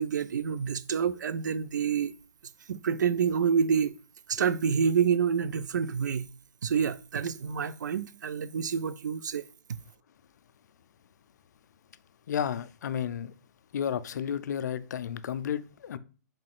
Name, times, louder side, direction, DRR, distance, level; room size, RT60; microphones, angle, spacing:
voice 1, 0.0-2.1 2.7-3.9 4.3-6.3 6.6-9.4, right 7 dB, 80° right, 0.4 m, -27 dB
voice 2, 12.3-13.3 13.7-16.0, left 8 dB, 70° left, 0.4 m, -32 dB
4.1 x 3.6 x 2.3 m
hypercardioid pair, 135°, 10 cm